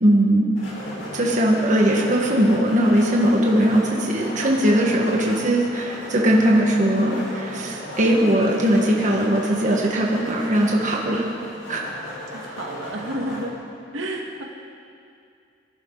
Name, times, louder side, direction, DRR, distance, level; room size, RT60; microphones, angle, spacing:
voice 1, 0.0-0.5 1.1-11.3 11.7-11.8, right 1 dB, 40° right, -2 dB, 1.6 m, -19 dB
sound 1, 0.6-13.4, left 1 dB, 90° left, 4.8 m, -36 dB
voice 2, 11.0-11.4 12.3-13.6 13.9-14.4, right 1 dB, 80° right, 0 dB, 1.8 m, -31 dB
24.0 x 11.5 x 4.0 m, 2.4 s
head